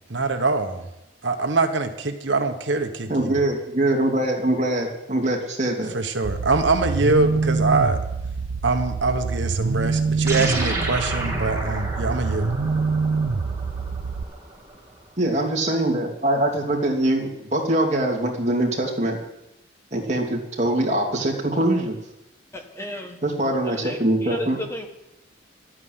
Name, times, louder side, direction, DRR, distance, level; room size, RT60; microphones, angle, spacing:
voice 1, 0.1-0.8 1.2-3.4 5.9-8.0 8.6-12.5, right 3 dB, 75° right, 5 dB, 1.2 m, -23 dB
voice 2, 3.1-6.0 15.2-19.2 19.9-22.0 23.2-24.6, right 1 dB, 35° right, -1 dB, 2.9 m, -23 dB
sound 1, 6.2-14.2, right 4 dB, 90° right, 0.6 m, -25 dB
sound 2, 10.3-14.9, right 2 dB, 15° right, 2.6 m, -31 dB
voice 3, 22.5-23.2 23.6-24.9, left 1 dB, 15° left, 3 dB, 1.4 m, -34 dB
12.5 x 9.5 x 9.7 m, 0.89 s
head